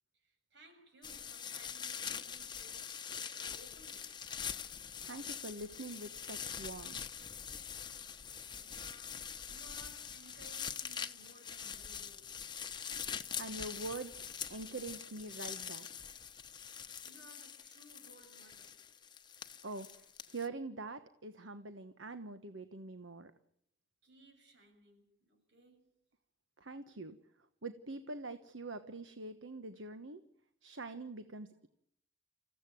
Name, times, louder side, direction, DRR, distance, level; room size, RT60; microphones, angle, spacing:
voice 1, 0.1-4.1 8.5-12.3 16.7-18.8 24.0-25.9, right 1 dB, 65° right, 7.4 m, -61 dB
sound 1, 1.0-20.5, left 7 dB, 25° left, 1.0 m, -44 dB
voice 2, 5.0-7.0 13.4-14.1 14.5-15.9 19.6-23.3 26.6-27.1 27.6-30.2 30.6-31.7, right 2 dB, 80° right, 1.2 m, -44 dB
27.5 x 15.5 x 9.2 m
head